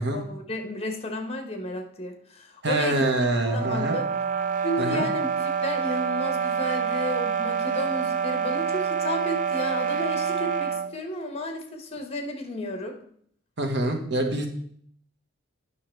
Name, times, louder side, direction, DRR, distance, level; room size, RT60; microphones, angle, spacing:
voice 1, 0.0-3.0 3.5-4.1 4.6-5.3 5.6-13.0, left 1 dB, 30° left, 5 dB, 1.3 m, -32 dB
voice 2, 2.6-4.0 4.8-5.0 13.6-14.5, right 2 dB, 60° right, 4 dB, 1.4 m, -25 dB
sound 1, 3.4-10.9, right 6 dB, 40° right, 0.5 m, -27 dB
9.7 x 6.1 x 4.6 m, 0.63 s
head